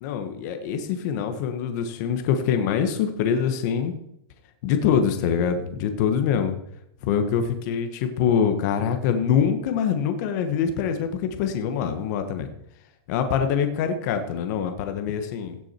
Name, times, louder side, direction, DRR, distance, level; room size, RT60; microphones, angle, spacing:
voice 1, 0.0-3.9 4.6-6.6 7.0-12.5 13.1-15.6, left 7 dB, 40° left, 7 dB, 1.2 m, -24 dB
16.5 x 6.3 x 4.4 m, 0.77 s
hypercardioid pair, 155°, 14 cm